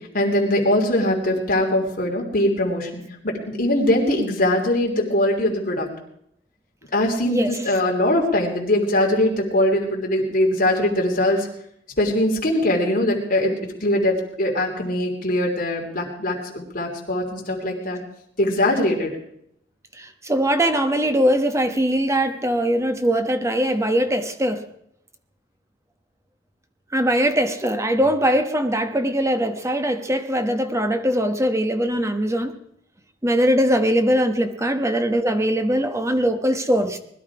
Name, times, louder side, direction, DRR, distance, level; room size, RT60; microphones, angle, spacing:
voice 1, 0.1-5.9 6.9-11.5 12.0-13.5 13.8-18.0 18.4-19.1, left 1 dB, 50° left, -1 dB, 3.2 m, -21 dB
voice 2, 20.0-24.6 26.9-32.6 33.2-37.0, equal, 15° right, 7 dB, 1.1 m, -21 dB
20.5 x 12.0 x 4.8 m, 0.73 s
head